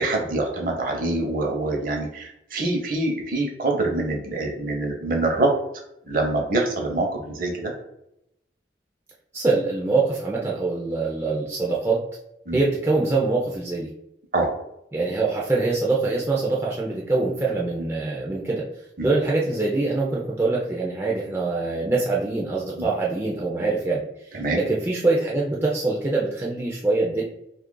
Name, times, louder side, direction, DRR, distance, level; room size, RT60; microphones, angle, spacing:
voice 1, 0.0-5.5 6.1-7.7 12.5-12.6 14.3-14.5 19.0-19.1 24.4-24.6, right 2 dB, 50° right, 1 dB, 0.7 m, -25 dB
voice 2, 9.3-12.1 12.5-13.9 14.9-18.7 19.0-27.2, right 3 dB, 15° right, -4 dB, 0.4 m, -24 dB
2.8 x 2.4 x 3.7 m, 0.81 s
head